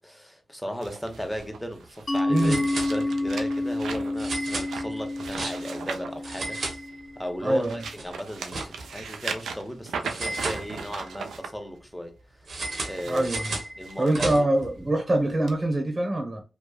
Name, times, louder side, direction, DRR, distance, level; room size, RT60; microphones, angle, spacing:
voice 1, 0.0-6.6 7.2-12.1 12.8-13.3 13.8-14.4, equal, 5° left, 0.9 m, -36 dB
sound 1, 0.8-6.9 7.4-11.5 12.7-14.1 14.6-14.8 15.5-15.6, right 5 dB, 90° right, 0.4 m, -38 dB
sound 2, 1.2-1.4 1.7-1.8 2.4-3.4 4.2-5.9 6.2-7.4 7.7-9.1 10.0-11.1 12.5-14.7, right 2 dB, 70° right, 0.9 m, -35 dB
Mallet percussion, 2.1-7.5, left 2 dB, 40° left, 0.4 m, -29 dB
voice 2, 2.3-2.6 7.4-7.8 13.1-13.6 14.0-16.4, right 1 dB, 35° right, 0.9 m, -24 dB
3.1 x 2.2 x 2.3 m
supercardioid pair, 40°, 0 cm